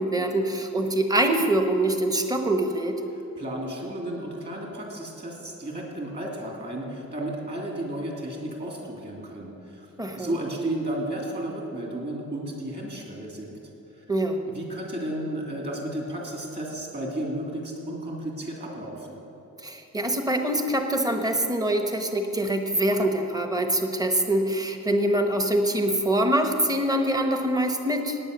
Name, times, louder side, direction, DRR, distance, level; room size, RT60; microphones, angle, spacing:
voice 1, 0.0-3.0 10.0-10.3 14.1-14.4 19.6-28.2, right 1 dB, 10° right, 5 dB, 1.1 m, -24 dB
voice 2, 3.4-9.9 10.1-13.6 14.0-14.1 14.5-19.2, right 1 dB, 30° right, -1 dB, 3.0 m, -33 dB
18.0 x 9.1 x 6.8 m, 2.9 s
wide cardioid pair, 160°, 31 cm